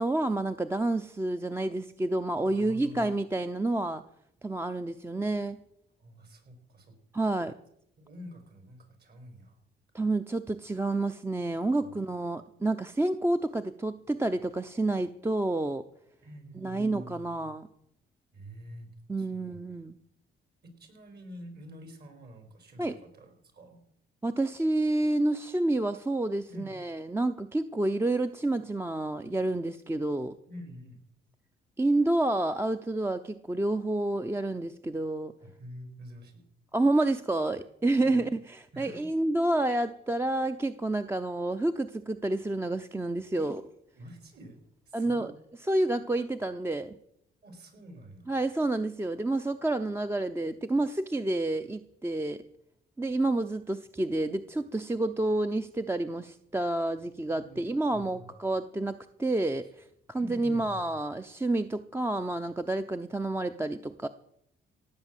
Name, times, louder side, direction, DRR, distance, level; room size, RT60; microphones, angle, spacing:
voice 1, 0.0-4.0 4.4-5.6 7.1-7.5 9.9-15.8 16.6-17.7 19.1-20.0 22.8-23.0 24.2-30.3 31.8-35.3 36.7-43.6 44.9-45.3 45.7-47.0 48.3-52.4 53.0-64.1, right 2 dB, 10° right, 8 dB, 0.7 m, -29 dB
voice 2, 2.4-3.1 6.0-7.0 8.0-9.6 11.8-11.9 16.2-17.4 18.3-18.9 19.2-19.6 20.6-23.8 26.5-26.7 30.5-31.0 35.4-36.5 38.0-38.2 38.7-39.1 43.3-43.6 43.9-45.3 47.4-48.3 57.3-57.6 57.9-58.3 60.1-60.9, equal, 55° right, 7 dB, 4.3 m, -47 dB
17.0 x 8.1 x 7.5 m, 0.74 s
cardioid pair, 90°, 20 cm